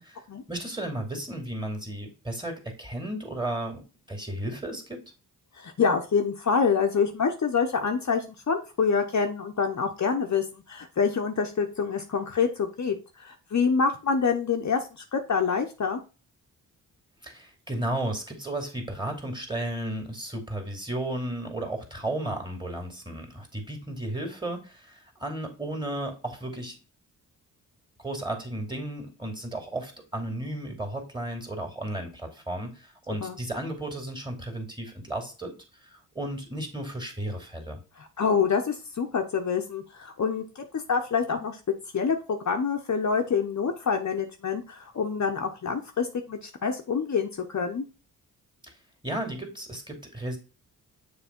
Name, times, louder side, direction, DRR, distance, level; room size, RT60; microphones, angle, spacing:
voice 1, 0.5-5.0 17.2-26.8 28.0-35.5 35.8-37.8 49.0-50.4, right 1 dB, 10° right, 2 dB, 2.5 m, -34 dB
voice 2, 5.6-16.0 33.2-33.4 38.0-40.4 40.7-41.6 41.9-47.8, left 5 dB, 40° left, 3 dB, 1.0 m, -26 dB
6.8 x 3.2 x 4.4 m, 0.32 s
supercardioid pair, 50°, 42 cm